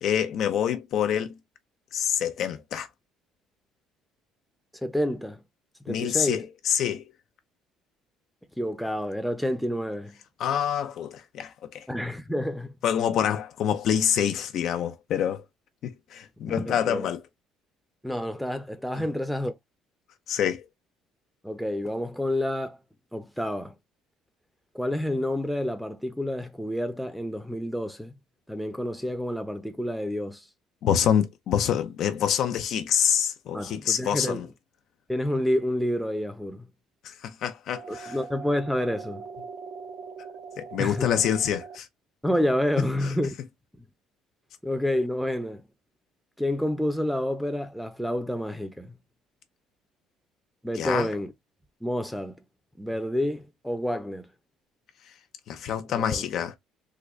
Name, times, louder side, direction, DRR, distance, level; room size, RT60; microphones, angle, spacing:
voice 1, 0.0-1.4 1.9-2.9 5.9-7.1 10.4-11.9 12.8-15.4 15.8-17.2 20.3-20.7 30.8-34.5 37.0-38.2 40.6-41.9 50.7-51.1 55.5-56.6, left 9 dB, 60° left, 0.6 m, -26 dB
voice 2, 4.8-5.4 5.8-6.4 8.6-10.2 11.9-12.7 16.5-17.1 18.0-19.5 21.4-22.8 23.1-23.7 24.7-28.1 28.5-30.4 33.5-34.4 35.1-36.7 37.9-39.3 40.8-41.1 42.2-43.3 44.6-45.6 46.4-48.9 50.6-51.3 51.8-52.3 52.8-54.3 55.9-56.2, left 1 dB, ahead, 0.7 m, -29 dB
sound 1, 37.8-41.8, right 5 dB, 65° right, 0.9 m, -41 dB
3.8 x 2.2 x 3.1 m
cardioid pair, 105°, 0 cm